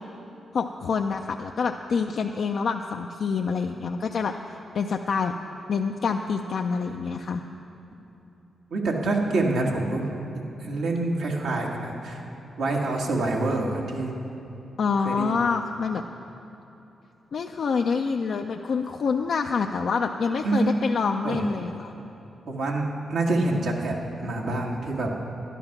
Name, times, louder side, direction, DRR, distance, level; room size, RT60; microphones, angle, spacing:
voice 1, 0.5-5.3 5.7-7.4 13.5-13.6 14.8-16.0 17.3-21.9, left 5 dB, 65° left, 3 dB, 0.5 m, -27 dB
voice 2, 8.7-10.0 10.6-12.2 12.6-14.1 15.0-15.4 20.4-20.7 21.2-21.5 22.5-25.1, right 2 dB, 80° right, -1 dB, 1.6 m, -26 dB
11.5 x 11.0 x 5.9 m, 3.0 s
supercardioid pair, 55°, 0 cm